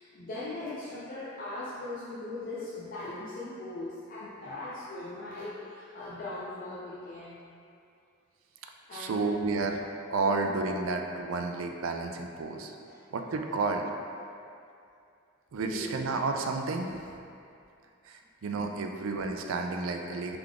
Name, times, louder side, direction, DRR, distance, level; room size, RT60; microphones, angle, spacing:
voice 1, 0.0-7.4 8.9-9.3 10.2-10.5 12.8-13.0 15.5-16.0, left 2 dB, 45° left, -8 dB, 0.5 m, -40 dB
voice 2, 8.9-9.8 10.1-12.7 13.1-13.9 15.5-16.9 18.1-20.4, right 3 dB, 85° right, 3 dB, 0.4 m, -31 dB
3.7 x 3.4 x 3.5 m, 2.5 s
head